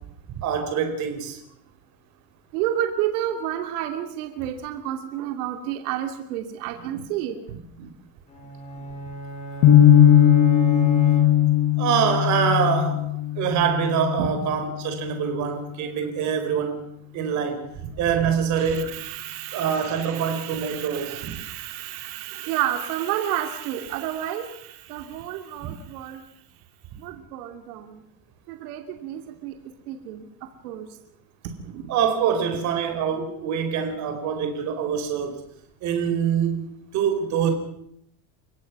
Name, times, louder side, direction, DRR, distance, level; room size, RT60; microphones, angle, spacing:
voice 1, 0.4-1.4 11.8-13.0 13.4-16.8 17.1-17.7 18.0-18.9 19.5-21.4 25.6-25.7 31.9-35.4 35.8-37.5, right 7 dB, 40° right, 6 dB, 4.4 m, -25 dB
voice 2, 2.5-7.9 14.2-14.5 18.5-26.2 27.0-28.0 28.5-29.5 29.9-30.9 31.6-31.8 32.5-32.6, right 11 dB, 85° right, 6 dB, 2.6 m, -31 dB
sound 1, 8.3-11.8, right 3 dB, 15° left, 3.6 m, -35 dB
sound 2, 9.6-15.7, left 10 dB, 50° left, 3.7 m, -19 dB
29.5 x 16.0 x 6.0 m, 0.72 s
cardioid pair, 175°, 44 cm